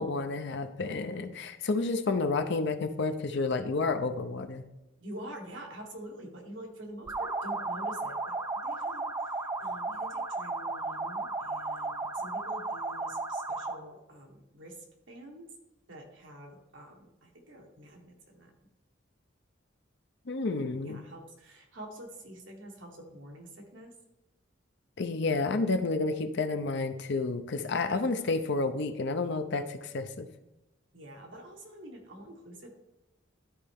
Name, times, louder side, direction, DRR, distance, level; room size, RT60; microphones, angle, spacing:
voice 1, 0.0-4.6 20.3-21.0 25.0-30.3, left 3 dB, 65° left, 7 dB, 0.7 m, -30 dB
voice 2, 5.0-15.5 15.9-18.7 20.6-23.9 27.9-28.3 30.9-32.7, right 1 dB, 70° right, 1 dB, 1.6 m, -47 dB
sound 1, 7.1-13.9, right 3 dB, 15° right, 0.4 m, -34 dB
12.0 x 4.3 x 3.6 m, 0.96 s
head